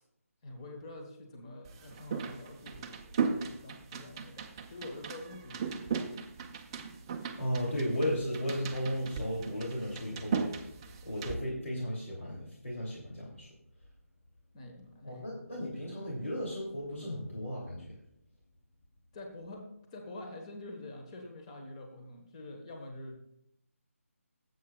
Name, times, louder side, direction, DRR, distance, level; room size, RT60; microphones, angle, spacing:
voice 1, 0.4-5.9 14.5-15.3 19.1-23.2, left 2 dB, 25° left, 3 dB, 1.3 m, -46 dB
sound 1, 1.6-11.4, right 6 dB, 20° right, 0.6 m, -37 dB
voice 2, 7.4-10.7 11.0-13.5 15.0-17.9, equal, 65° left, -3 dB, 2.9 m, -35 dB
17.5 x 7.9 x 2.4 m, 0.76 s
figure-of-eight pair, 160°, 8 cm